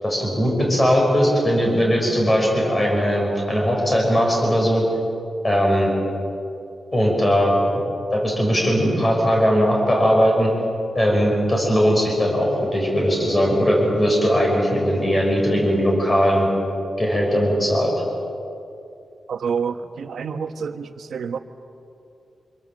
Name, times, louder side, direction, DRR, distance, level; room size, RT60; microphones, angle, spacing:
voice 1, 0.0-4.8 5.4-5.9 6.9-7.5 8.1-10.5 10.9-16.5 17.0-17.9, equal, 20° left, -1 dB, 5.8 m, -19 dB
voice 2, 19.3-21.4, right 6 dB, 90° right, 7 dB, 1.4 m, -28 dB
27.0 x 23.0 x 7.6 m, 2.6 s
wide cardioid pair, 175°, 0 cm